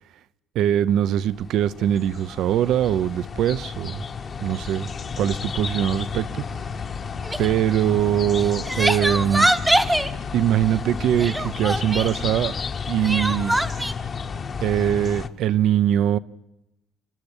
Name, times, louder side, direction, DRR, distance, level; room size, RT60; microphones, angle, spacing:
voice 1, 0.5-4.0 4.4-4.9 5.2-6.4 7.4-9.5 10.3-12.5 12.9-13.6 14.6-16.2, right 11 dB, 65° right, 0.7 m, -22 dB
sound 1, 1.1-15.3, left 5 dB, 30° left, 1.0 m, -32 dB
Crying sobbing, 7.2-7.5 8.4-10.1 11.2-12.1 13.0-13.9, right 1 dB, 5° right, 0.9 m, -23 dB
28.5 x 12.0 x 10.0 m
cardioid pair, 160°, 0 cm